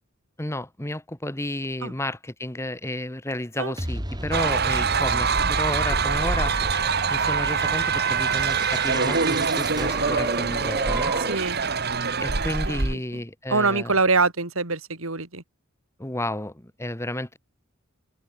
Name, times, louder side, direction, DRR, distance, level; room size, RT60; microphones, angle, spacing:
voice 1, 0.4-6.6 7.1-11.1 12.2-13.9 16.0-17.4, left 1 dB, 15° left, 1.8 m, -32 dB
sound 1, 3.8-11.6, right 1 dB, 20° right, 5.1 m, -33 dB
sound 2, 4.3-12.9, right 5 dB, 50° right, 2.7 m, -24 dB
voice 2, 11.2-11.6 12.7-13.0 13.5-15.4, right 3 dB, 85° right, 3.6 m, -24 dB
open air
head